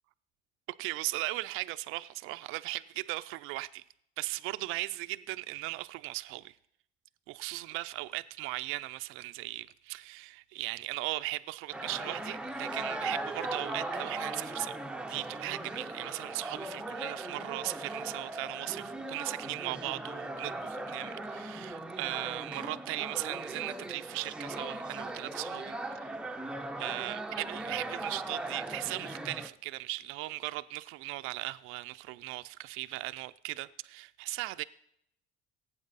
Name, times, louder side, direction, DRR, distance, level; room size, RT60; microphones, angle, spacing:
voice 1, 0.8-3.8 4.2-6.6 7.3-14.8 15.1-26.2 26.8-34.6, right 19 dB, 80° right, 0.4 m, -38 dB
sound 1, 11.7-29.5, right 2 dB, 5° right, 0.5 m, -39 dB
17.5 x 8.7 x 4.0 m
cardioid pair, 140°, 21 cm